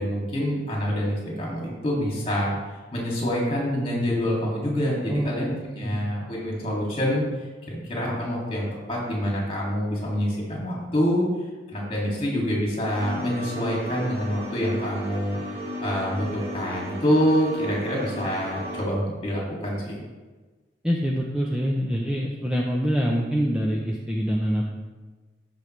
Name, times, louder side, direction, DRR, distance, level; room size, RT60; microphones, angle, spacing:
voice 1, 0.0-2.5 2.9-7.2 7.7-11.2 11.7-15.4 15.8-20.0, equal, 30° left, -4 dB, 2.4 m, -26 dB
sound 1, 12.8-18.8, equal, 60° right, 1.9 m, -35 dB
voice 2, 20.8-24.6, equal, 5° right, -3 dB, 0.6 m, -25 dB
12.5 x 5.2 x 3.2 m, 1.3 s
head